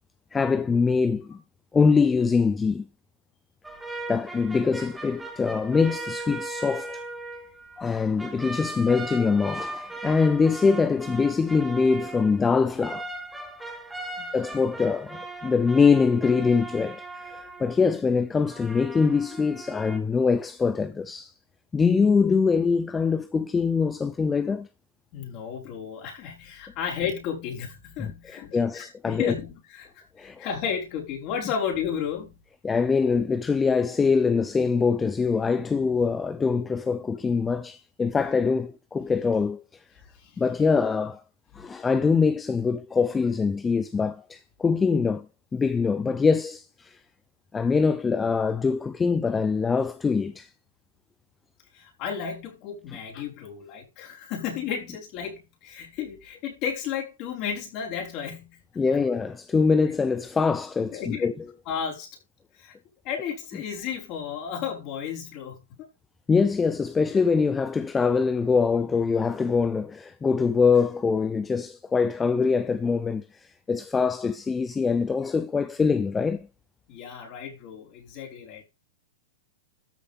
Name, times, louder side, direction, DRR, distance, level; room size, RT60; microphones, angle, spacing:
voice 1, 0.3-1.4 1.7-2.9 4.1-7.0 7.8-13.1 14.3-21.3 21.7-24.7 28.0-28.1 28.5-29.3 30.2-30.5 32.6-39.6 40.4-41.2 41.5-45.3 45.5-47.0 47.5-50.5 58.8-61.3 66.3-76.5, left 5 dB, 15° left, 0.6 m, -23 dB
sound 1, 3.6-18.0 18.4-20.0, right 2 dB, 5° right, 2.2 m, -38 dB
voice 2, 25.1-32.4 40.2-40.4 51.7-58.6 58.9-59.1 60.8-61.3 61.7-62.1 62.6-62.7 63.0-65.9 76.9-78.7, left 7 dB, 40° left, 5.3 m, -33 dB
13.5 x 6.6 x 3.6 m
hypercardioid pair, 115°, 0 cm